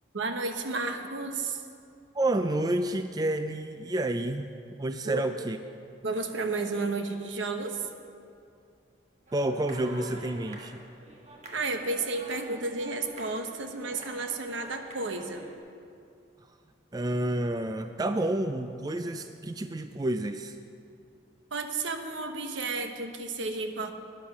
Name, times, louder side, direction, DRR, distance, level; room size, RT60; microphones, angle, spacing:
voice 1, 0.1-1.6 5.0-5.2 6.0-7.9 11.5-15.4 21.5-23.9, right 3 dB, 80° right, 6 dB, 1.1 m, -32 dB
voice 2, 2.1-4.5 4.8-5.6 9.3-10.8 16.9-20.6, right 1 dB, 20° right, 8 dB, 0.3 m, -29 dB
sound 1, 9.3-15.6, right 1 dB, 35° right, 1.5 m, -48 dB
12.5 x 10.0 x 6.0 m, 2.4 s
head